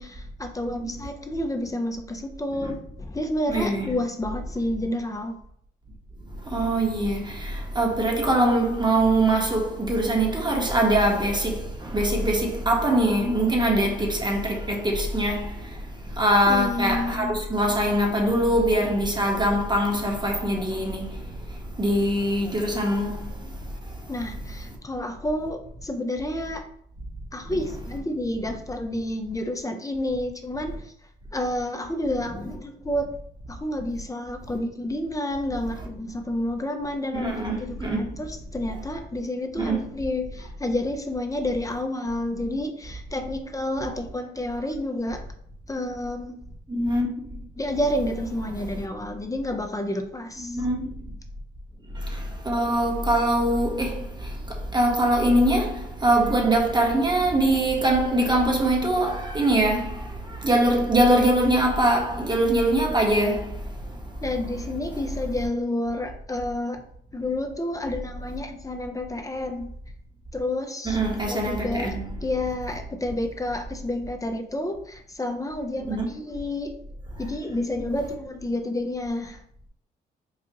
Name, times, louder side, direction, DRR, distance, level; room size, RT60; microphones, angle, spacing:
voice 1, 0.0-2.7 3.0-5.3 16.5-17.4 24.1-26.6 27.3-30.7 31.3-33.1 33.5-45.2 45.7-46.4 47.6-50.6 64.2-66.8 67.1-69.7 70.3-71.0 71.3-72.0 72.2-76.8 77.2-79.4, left 1 dB, 15° left, 0.6 m, -30 dB
voice 2, 0.6-0.9 2.5-2.7 3.5-4.0 6.5-15.6 16.2-21.2 21.8-23.3 27.5-27.7 32.3-32.4 35.7-35.9 37.1-38.0 39.6-39.8 46.7-47.1 50.4-50.9 52.1-54.4 54.7-63.5 70.8-72.3 75.8-76.1 78.0-78.1, right 1 dB, 25° right, 1.1 m, -23 dB
4.8 x 2.4 x 2.9 m
supercardioid pair, 60°, 19 cm